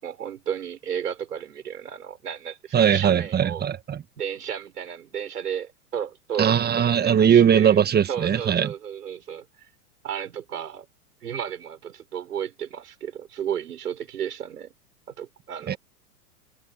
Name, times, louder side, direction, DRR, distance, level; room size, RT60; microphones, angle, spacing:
voice 1, 0.0-3.6 4.2-9.4 10.0-10.9 11.2-14.7 15.2-15.8, right 8 dB, 80° right, 4.9 m, -33 dB
voice 2, 2.7-4.0 6.4-8.7 15.7-15.8, right 8 dB, 20° right, 1.5 m, -20 dB
hypercardioid pair, 105°, 46 cm